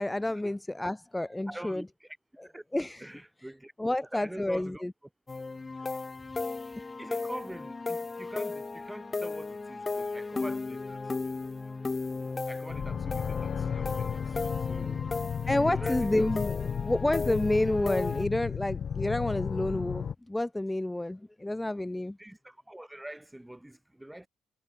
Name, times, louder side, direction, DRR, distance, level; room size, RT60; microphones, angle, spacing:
voice 1, 0.0-1.8 2.4-2.5 2.7-3.1 3.8-4.9 6.3-7.0 11.5-12.5 14.0-14.1 15.5-22.2, left 1 dB, 10° left, 1.2 m, -30 dB
voice 2, 1.5-2.2 2.4-2.6 3.0-3.7 4.0-4.8 5.8-6.0 7.0-11.3 12.4-15.1 15.6-16.3 22.2-24.3, right 1 dB, 5° right, 4.5 m, -45 dB
sound 1, 5.3-18.3, left 3 dB, 25° left, 1.5 m, -35 dB
sound 2, 12.7-20.1, left 7 dB, 50° left, 1.4 m, -34 dB
cardioid pair, 90°, 0 cm